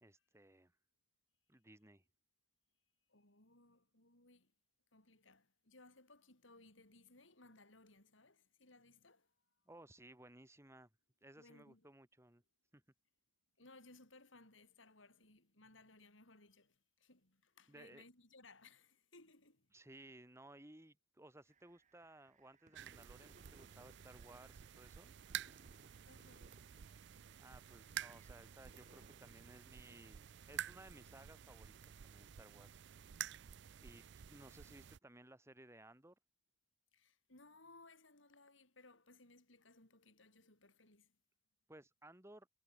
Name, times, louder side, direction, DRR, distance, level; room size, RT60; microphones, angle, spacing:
voice 1, 0.0-0.7 1.5-2.0 9.7-10.9 11.2-12.4 12.7-12.8 17.7-18.0 19.7-25.1 27.4-31.8 32.0-33.2 33.8-36.2 41.7-42.5, right 1 dB, 15° right, 2.4 m, -60 dB
voice 2, 3.1-4.5 4.9-9.3 11.4-11.9 13.6-19.7 26.1-26.7 27.0-27.3 36.9-41.2, left 2 dB, 80° left, 7.4 m, -64 dB
sound 1, 21.5-31.3, right 2 dB, 40° right, 5.0 m, -70 dB
sound 2, 22.7-35.0, right 10 dB, 65° right, 0.5 m, -50 dB
head